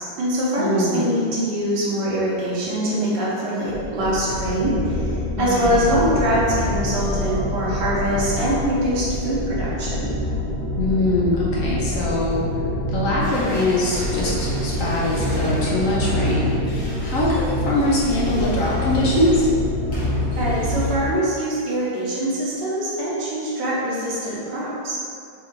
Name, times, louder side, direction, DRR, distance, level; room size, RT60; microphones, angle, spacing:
voice 1, 0.0-10.1 20.4-25.0, right 1 dB, 65° right, -7 dB, 1.7 m, -23 dB
voice 2, 0.6-1.1 5.4-5.8 10.8-12.4 12.9-16.5 17.0-19.5, left 1 dB, 60° left, -5 dB, 0.9 m, -22 dB
sound 1, 3.7-21.1, left 1 dB, 40° left, 1.4 m, -26 dB
sound 2, 13.2-21.3, equal, 75° left, 2.2 m, -37 dB
4.8 x 2.5 x 4.4 m, 2.3 s
omnidirectional pair, 2.0 m